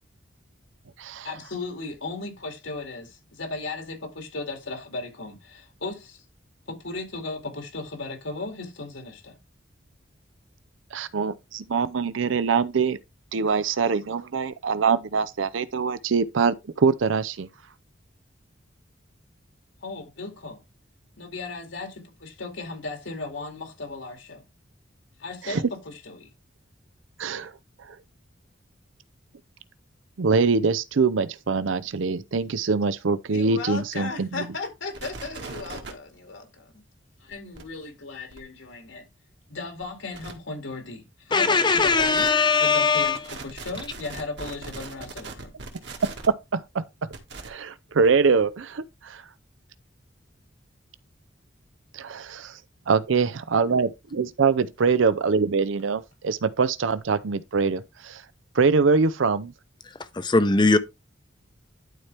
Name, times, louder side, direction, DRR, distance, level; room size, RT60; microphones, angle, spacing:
voice 1, 1.2-6.2 6.7-9.4 19.8-20.6 21.2-24.4 25.2-26.3 33.3-36.7 37.2-39.1 39.5-42.3 42.6-45.5, left 3 dB, 80° left, 2.4 m, -36 dB
voice 2, 10.9-13.0 13.3-17.5 25.4-25.6 27.2-27.5 30.2-34.5 46.5-46.8 47.4-49.2 51.9-52.6 52.9-58.2 58.6-59.5, right 5 dB, 80° right, 0.6 m, -24 dB
sound 1, 34.9-35.9 37.3-37.6 38.3-38.4 39.8-39.9 40.1-40.3 41.8-42.3 43.0-46.3 47.1-47.5, right 3 dB, 60° right, 1.8 m, -39 dB
voice 3, 41.3-43.2 60.1-60.8, left 4 dB, 25° left, 0.7 m, -20 dB
11.5 x 4.4 x 3.4 m
head